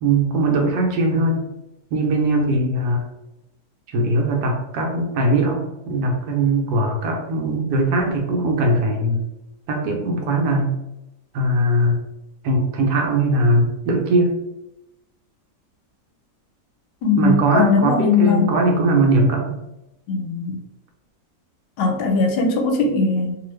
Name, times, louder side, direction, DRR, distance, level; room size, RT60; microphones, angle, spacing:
voice 1, 0.0-1.4 1.9-3.1 3.9-9.2 9.7-10.7 11.3-12.0 12.4-14.3 17.2-19.6, right 2 dB, 75° right, 1 dB, 1.2 m, -20 dB
voice 2, 17.0-18.6 20.1-20.6 21.8-23.4, left 4 dB, 80° left, 3 dB, 1.2 m, -20 dB
2.9 x 2.3 x 3.1 m, 0.89 s
omnidirectional pair, 1.9 m